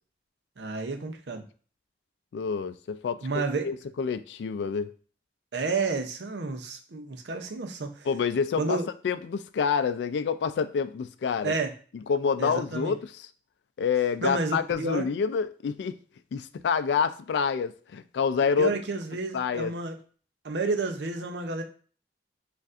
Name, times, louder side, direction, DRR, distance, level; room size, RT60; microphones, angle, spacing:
voice 1, 0.6-1.4 3.2-3.7 5.5-8.1 8.6-8.9 11.4-11.7 12.4-13.0 14.2-15.1 18.6-20.0 20.4-21.6, right 3 dB, 85° right, 0.6 m, -30 dB
voice 2, 2.3-3.2 3.6-4.9 8.1-8.8 9.0-11.5 12.1-13.0 13.8-16.0 16.3-18.7 19.3-19.7, left 6 dB, 85° left, 0.3 m, -27 dB
6.5 x 2.5 x 2.4 m
head